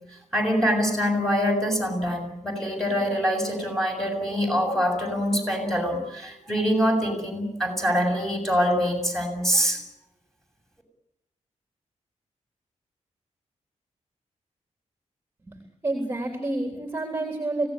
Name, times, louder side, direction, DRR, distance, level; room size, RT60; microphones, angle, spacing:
voice 1, 0.3-9.8, equal, 5° left, 1 dB, 7.3 m, -24 dB
voice 2, 15.5-17.7, right 2 dB, 20° right, 4 dB, 3.5 m, -29 dB
25.0 x 18.0 x 10.0 m, 0.84 s
wide cardioid pair, 155°, 12 cm